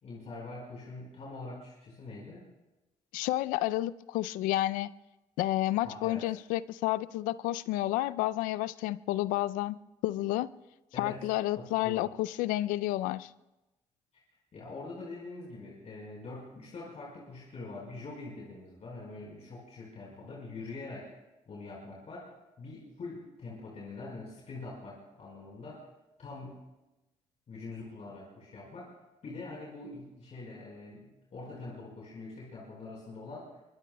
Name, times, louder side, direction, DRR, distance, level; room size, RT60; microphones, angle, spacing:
voice 1, 0.0-2.4 5.8-6.3 10.9-12.1 14.3-21.1 21.5-25.9 26.2-26.7 27.5-29.0 29.2-33.6, left 3 dB, 55° left, -4 dB, 4.6 m, -44 dB
voice 2, 3.1-4.9 5.4-9.8 10.0-10.5 11.0-13.3, left 16 dB, 85° left, 17 dB, 0.4 m, -30 dB
23.5 x 23.0 x 2.2 m, 1.0 s
supercardioid pair, 55°, 14 cm